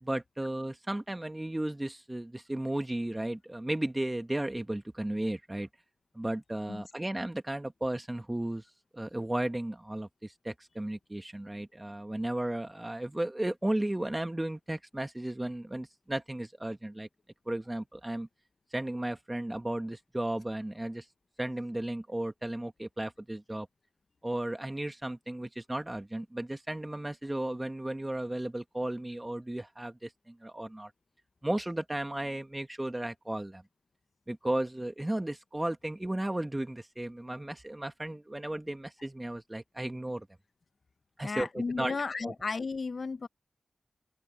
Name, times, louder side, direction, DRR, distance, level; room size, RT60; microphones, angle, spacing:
voice 1, 0.0-5.7 6.1-8.7 8.9-17.1 17.5-18.3 18.7-21.1 21.4-23.7 24.2-30.9 31.4-33.6 34.3-40.3 41.2-42.3, right 1 dB, 20° right, 1.4 m, -34 dB
voice 2, 41.2-43.3, left 4 dB, 60° left, 1.0 m, -34 dB
open air
cardioid pair, 40°, 0 cm